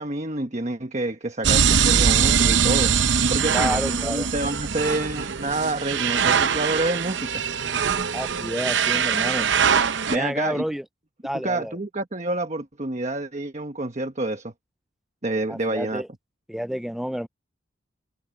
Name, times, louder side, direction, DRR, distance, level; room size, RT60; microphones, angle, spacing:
voice 1, 0.0-2.9 3.3-7.4 10.1-10.6 11.3-14.5 15.2-16.0, right 2 dB, 35° right, 1.2 m, -28 dB
sound 1, 1.4-10.2, right 7 dB, 60° right, 0.8 m, -22 dB
voice 2, 3.5-4.3 8.1-9.5 10.1-10.8 11.2-11.8 15.5-16.1 16.5-17.3, equal, ahead, 0.4 m, -29 dB
head